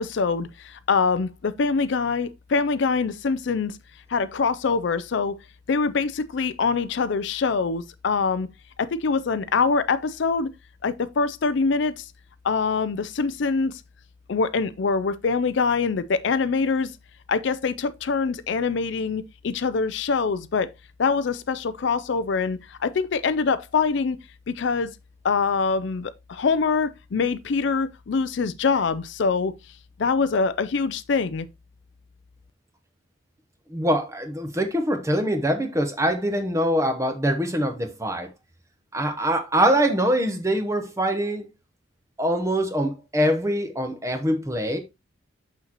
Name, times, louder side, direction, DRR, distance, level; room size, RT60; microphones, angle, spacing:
voice 1, 0.0-3.8 4.1-5.4 5.7-8.5 8.8-10.5 10.8-12.1 12.4-13.7 14.3-16.9 17.3-20.7 21.0-24.2 24.5-24.9 25.2-29.5 30.0-31.5, left 4 dB, 60° left, 0.4 m, -24 dB
voice 2, 33.7-38.3 38.9-41.5 42.2-44.8, equal, 15° right, 0.9 m, -24 dB
6.4 x 6.2 x 2.9 m
head